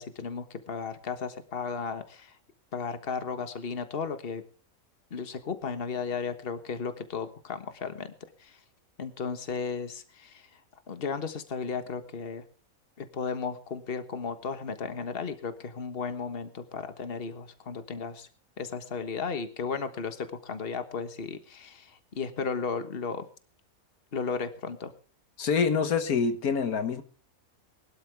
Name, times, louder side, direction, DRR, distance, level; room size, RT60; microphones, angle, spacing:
voice 1, 0.0-2.4 2.7-4.4 5.1-8.1 8.4-8.6 9.0-10.5 10.9-12.4 13.0-18.3 18.6-23.3 24.1-24.9, left 5 dB, 40° left, 1.6 m, -35 dB
voice 2, 25.4-27.0, left 5 dB, 90° left, 1.8 m, -26 dB
22.0 x 12.0 x 3.4 m
omnidirectional pair, 1.5 m